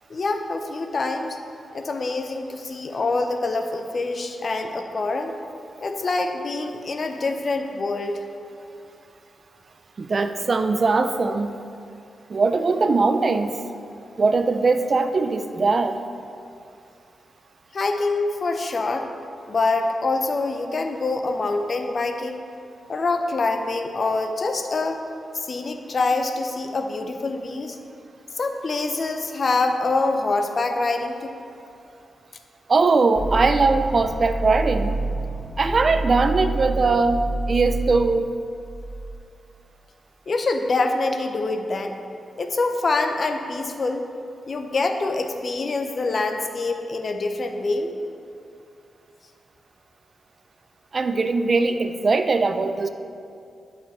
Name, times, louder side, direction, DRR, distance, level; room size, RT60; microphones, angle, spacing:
voice 1, 0.1-1.4 1.7-5.4 5.8-8.1 17.7-19.1 19.5-22.4 22.9-25.0 25.3-27.8 28.4-31.3 40.3-42.0 42.4-44.1 44.5-47.9, left 3 dB, 45° left, 5 dB, 0.7 m, -25 dB
voice 2, 10.0-11.6 12.3-13.6 14.2-16.0 32.7-35.0 35.6-37.2 37.5-38.3 50.9-52.9, right 3 dB, 45° right, 9 dB, 0.4 m, -20 dB
sound 1, 33.2-39.1, right 2 dB, 20° right, 1.2 m, -28 dB
11.5 x 5.3 x 4.2 m, 2.5 s
wide cardioid pair, 105°, 0 cm